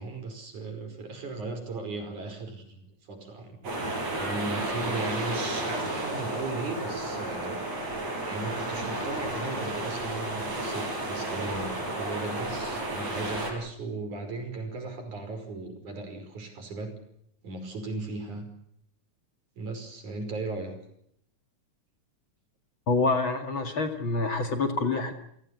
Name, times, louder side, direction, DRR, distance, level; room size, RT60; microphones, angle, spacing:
voice 1, 0.0-3.6 4.2-7.6 8.2-17.0 17.4-18.5 19.6-20.8, right 3 dB, 70° right, 6 dB, 6.9 m, -37 dB
sound 1, 3.6-13.5, right 1 dB, 55° right, 7.0 m, -32 dB
voice 2, 22.9-25.1, left 3 dB, 45° left, 6 dB, 2.6 m, -27 dB
29.5 x 17.5 x 8.5 m, 0.73 s
omnidirectional pair, 3.5 m